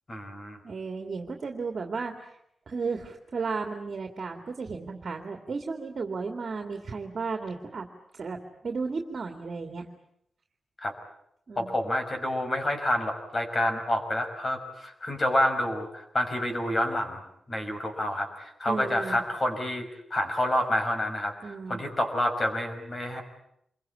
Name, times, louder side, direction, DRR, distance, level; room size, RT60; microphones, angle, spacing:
voice 1, 0.1-0.6 10.8-10.9 11.6-17.2 17.5-23.2, left 1 dB, 30° left, 5 dB, 5.9 m, -28 dB
voice 2, 0.6-2.3 2.7-7.9 8.2-8.4 8.6-9.9 11.5-11.8 18.7-19.2 21.4-21.8, right 4 dB, 50° right, 4 dB, 2.4 m, -34 dB
27.5 x 23.0 x 8.6 m, 0.75 s
wide cardioid pair, 135°, 0 cm